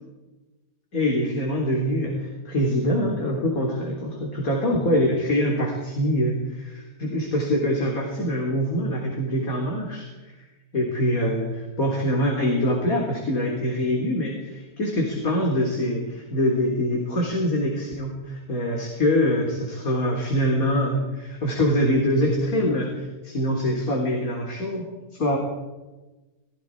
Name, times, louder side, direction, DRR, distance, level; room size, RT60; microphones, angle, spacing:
voice 1, 0.9-10.3 10.7-24.9 25.1-25.4, equal, 55° left, -1 dB, 4.0 m, -24 dB
27.0 x 21.0 x 4.8 m, 1.2 s
omnidirectional pair, 1.7 m